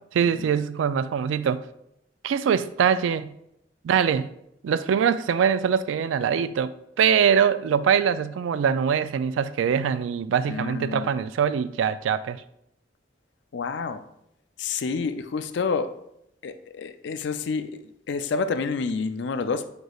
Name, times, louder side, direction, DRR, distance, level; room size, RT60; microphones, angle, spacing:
voice 1, 0.1-1.6 2.2-3.3 3.8-4.3 4.6-12.4, right 7 dB, 85° right, 0.3 m, -23 dB
voice 2, 10.4-11.1 13.5-14.0 14.6-15.9 16.4-19.6, left 4 dB, 65° left, 0.4 m, -29 dB
7.9 x 5.1 x 2.3 m
head